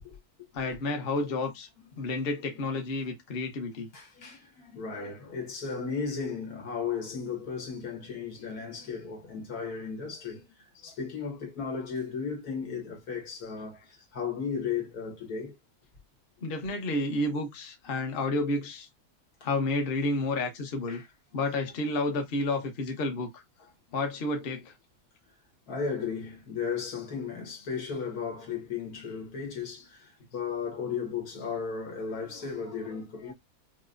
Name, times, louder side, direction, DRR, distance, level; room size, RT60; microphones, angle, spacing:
voice 1, 0.5-1.7 2.0-3.9 16.4-18.9 19.4-21.0 21.3-23.4 23.9-24.7, left 2 dB, 45° left, 1.0 m, -30 dB
voice 2, 3.9-15.5 19.4-19.5 20.9-21.1 25.7-33.3, left 6 dB, 80° left, 1.9 m, -35 dB
5.8 x 2.2 x 2.5 m
omnidirectional pair, 1.6 m